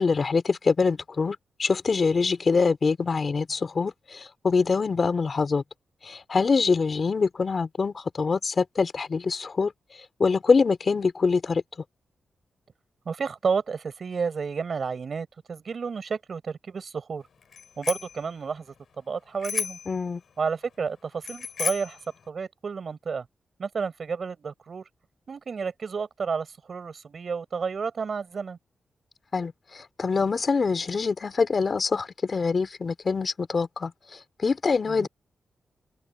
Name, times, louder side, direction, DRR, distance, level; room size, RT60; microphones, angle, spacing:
voice 1, 0.0-5.6 6.0-9.7 10.2-11.6 19.9-20.2 29.3-33.9 34.4-35.1, left 4 dB, 50° left, 3.2 m, -24 dB
voice 2, 13.0-17.2 17.8-19.8 20.4-22.0 22.3-23.3 23.6-24.9 25.3-28.6 34.9-35.1, right 5 dB, 55° right, 4.6 m, -31 dB
Bicycle bell, 17.5-18.2 19.4-20.0 21.2-22.0, left 6 dB, 70° left, 6.1 m, -32 dB
cardioid pair, 80°, 0 cm